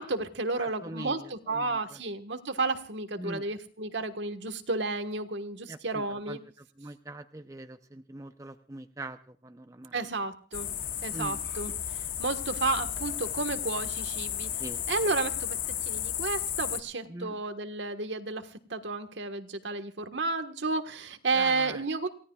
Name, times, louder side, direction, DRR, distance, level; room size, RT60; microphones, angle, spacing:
voice 1, 0.0-6.4 9.9-10.7 11.0-14.5 14.9-22.1, right 3 dB, 70° right, 8 dB, 1.4 m, -32 dB
voice 2, 0.6-2.0 3.2-3.4 5.7-10.0 11.1-11.4 14.6-14.9 17.1-17.4 21.3-21.8, right 2 dB, 15° right, 8 dB, 0.6 m, -43 dB
sound 1, 10.5-16.8, left 10 dB, 45° left, 0.9 m, -33 dB
28.0 x 17.5 x 2.4 m, 0.43 s
head